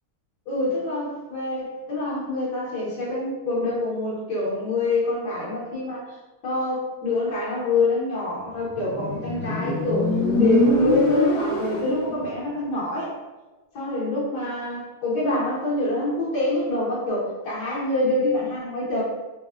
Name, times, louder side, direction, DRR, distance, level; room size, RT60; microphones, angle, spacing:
voice 1, 0.5-6.1 6.4-13.2 13.7-19.0, left 2 dB, 60° left, -7 dB, 1.3 m, -26 dB
Motorcycle, 8.7-12.2, left 1 dB, 90° left, 0.8 m, -23 dB
4.1 x 2.0 x 2.3 m, 1.1 s
omnidirectional pair, 2.3 m